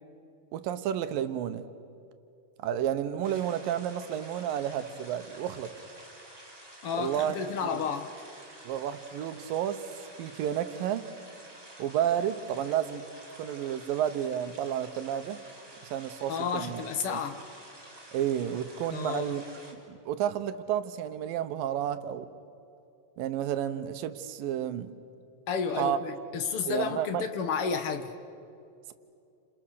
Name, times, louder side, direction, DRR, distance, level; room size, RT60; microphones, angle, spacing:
voice 1, 0.5-1.7 2.6-5.7 7.0-7.4 7.6-7.8 8.6-9.8 10.2-11.1 11.8-13.0 13.4-15.4 15.8-16.8 17.0-17.2 18.1-19.4 19.9-22.3 23.2-24.9 25.8-26.0 26.7-27.2, right 10 dB, 90° right, 10 dB, 2.7 m, -31 dB
sound 1, 3.2-19.7, right 1 dB, 5° right, 3.3 m, -50 dB
voice 2, 6.8-8.2 16.3-17.4 18.9-19.4 25.5-28.2, left 6 dB, 55° left, 7 dB, 1.7 m, -31 dB
30.0 x 27.5 x 6.5 m, 2.6 s
omnidirectional pair, 3.9 m